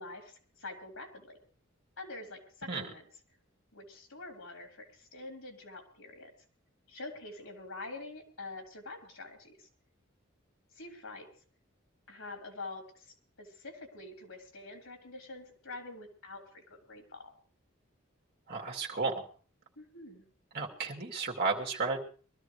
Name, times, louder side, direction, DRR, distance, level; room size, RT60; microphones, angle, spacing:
voice 1, 0.0-1.4 2.0-3.0 3.7-6.3 6.9-9.7 10.7-11.3 12.1-17.3 19.8-20.2, left 2 dB, 90° left, 3 dB, 3.7 m, -46 dB
voice 2, 18.5-19.2 20.5-22.0, right 4 dB, 50° right, 0 dB, 2.5 m, -33 dB
23.0 x 13.5 x 3.3 m, 0.42 s
head